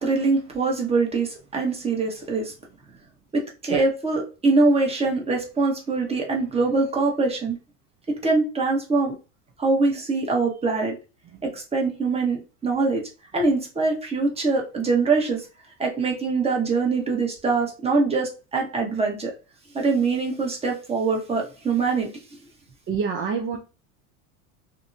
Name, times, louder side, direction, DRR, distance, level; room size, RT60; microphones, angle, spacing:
voice 1, 0.0-2.5 3.3-7.6 8.1-9.1 9.6-10.9 11.4-13.0 13.3-15.5 15.8-19.3 19.7-22.1, right 3 dB, 15° right, 0.9 m, -23 dB
voice 2, 22.9-23.6, right 6 dB, 30° right, 0.5 m, -27 dB
2.7 x 2.1 x 2.5 m
hypercardioid pair, 100°, 42 cm